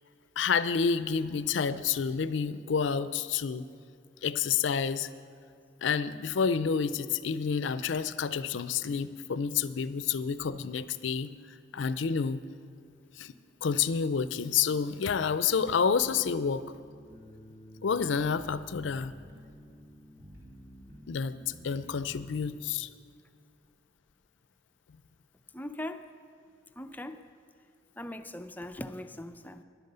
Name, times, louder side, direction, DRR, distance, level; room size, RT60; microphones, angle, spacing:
voice 1, 0.4-3.7 4.2-5.1 5.8-11.3 11.7-12.4 13.2-13.3 13.6-16.6 17.8-19.1 21.1-22.9, left 6 dB, 70° left, 14 dB, 0.4 m, -29 dB
sound 1, 15.9-22.5, equal, 55° right, 2.8 m, -51 dB
voice 2, 25.5-26.1 26.8-27.3 28.0-29.6, left 1 dB, 10° left, 9 dB, 0.4 m, -40 dB
11.0 x 9.3 x 6.7 m, 2.3 s
head